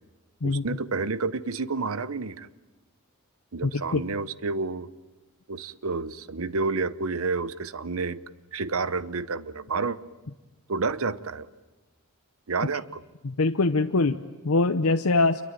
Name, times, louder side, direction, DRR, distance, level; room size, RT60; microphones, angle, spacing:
voice 1, 0.4-2.5 3.5-4.9 5.5-8.2 8.5-10.0 10.7-11.5 12.5-13.0, right 4 dB, 70° right, 16 dB, 0.9 m, -29 dB
voice 2, 3.6-4.0 13.2-15.4, left 3 dB, 80° left, 6 dB, 0.8 m, -23 dB
28.0 x 23.0 x 9.1 m, 1.1 s
head